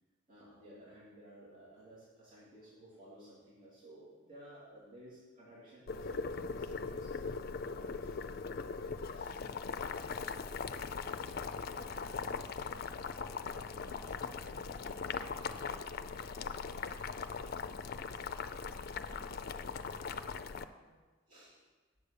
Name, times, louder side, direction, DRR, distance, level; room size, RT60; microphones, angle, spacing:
voice 1, 0.3-7.2 7.6-8.2 9.1-9.3 21.3-21.6, right 1 dB, 45° right, -9 dB, 3.0 m, -56 dB
Boiling, 5.9-20.6, left 5 dB, 50° left, 0.4 m, -40 dB
voice 2, 10.6-11.3 11.7-17.6 18.1-18.6 18.9-21.1, right 2 dB, 60° right, -7 dB, 3.7 m, -62 dB
8.4 x 7.4 x 6.6 m, 1.3 s
head